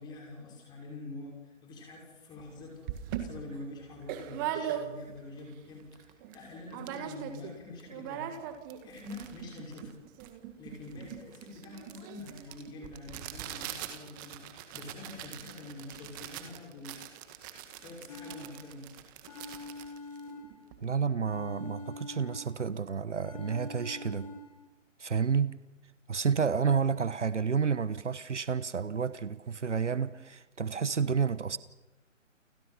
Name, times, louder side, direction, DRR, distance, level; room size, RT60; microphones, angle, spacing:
voice 1, 0.0-2.9 3.2-8.5 8.8-10.0 10.6-17.0 17.7-19.0, left 2 dB, 10° left, 5.7 m, -46 dB
sound 1, 2.4-2.5 2.9-5.3 5.7-5.8 5.9-6.4 6.7-7.5 7.8-20.9, right 10 dB, 15° right, 1.8 m, -41 dB
sound 2, 18.1-18.9 19.3-20.9 21.2-22.8 23.2-24.7, left 3 dB, 30° left, 3.2 m, -45 dB
voice 2, 20.8-24.3 25.0-25.6 26.1-31.6, right 6 dB, 65° right, 1.2 m, -30 dB
29.5 x 24.5 x 5.8 m
figure-of-eight pair, 150°, 38 cm